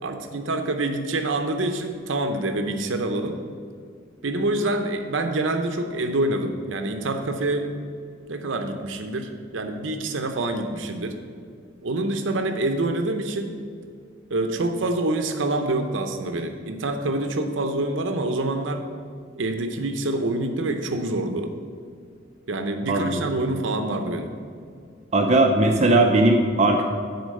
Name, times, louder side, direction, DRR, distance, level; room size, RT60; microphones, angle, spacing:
voice 1, 0.0-3.4 4.2-7.7 8.3-11.2 11.8-13.5 14.3-18.8 19.4-21.5 22.5-24.4, right 2 dB, 75° right, 5 dB, 0.7 m, -26 dB
voice 2, 22.9-23.2 25.1-26.8, right 2 dB, 35° right, 2 dB, 0.6 m, -18 dB
9.5 x 4.4 x 6.5 m, 2.3 s
head